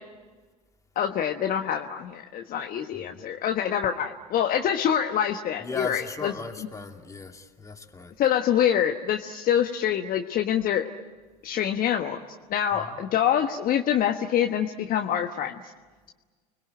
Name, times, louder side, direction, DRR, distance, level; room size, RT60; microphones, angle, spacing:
voice 1, 0.9-6.3 8.2-10.9 11.4-12.2 12.5-15.6, left 9 dB, 45° left, 5 dB, 1.3 m, -25 dB
voice 2, 2.9-3.2 5.6-8.1 12.7-13.0, left 3 dB, 15° left, 3 dB, 2.7 m, -37 dB
30.0 x 21.5 x 9.0 m, 1.4 s
hypercardioid pair, 75°, 21 cm